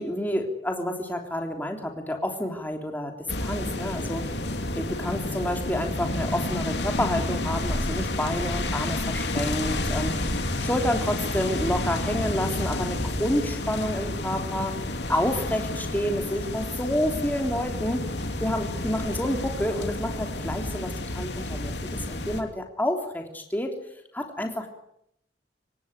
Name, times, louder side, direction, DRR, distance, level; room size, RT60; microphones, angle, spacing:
voice 1, 0.0-3.1 3.4-4.2 4.7-10.2 10.6-14.7 15.1-18.1 18.4-23.7 24.1-24.7, left 1 dB, 10° left, 3 dB, 3.4 m, -29 dB
sound 1, 3.3-22.4, left 1 dB, 70° left, 3.2 m, -30 dB
25.5 x 18.5 x 9.4 m, 0.76 s
head